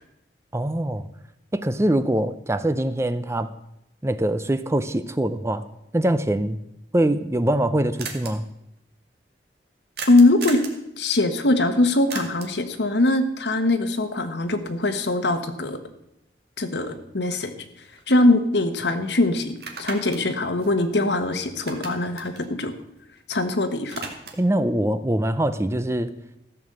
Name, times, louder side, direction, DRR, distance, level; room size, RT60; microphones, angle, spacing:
voice 1, 0.5-1.0 1.5-3.5 4.0-5.7 5.9-6.6 6.9-8.5 24.4-26.1, right 1 dB, 15° right, 12 dB, 0.5 m, -23 dB
sound 1, 7.3-7.4 7.6-7.7 8.0-8.3 10.0-10.8 12.1-12.6 16.8-16.9 17.3-18.5 18.8-18.9 19.5-21.3 21.5-23.4 23.7-24.5, right 5 dB, 60° right, 2.1 m, -37 dB
voice 2, 10.1-10.6 11.0-15.8 16.6-17.5 18.1-22.7 23.3-24.0, left 2 dB, 75° left, 8 dB, 1.3 m, -22 dB
14.5 x 7.0 x 7.7 m, 0.82 s
head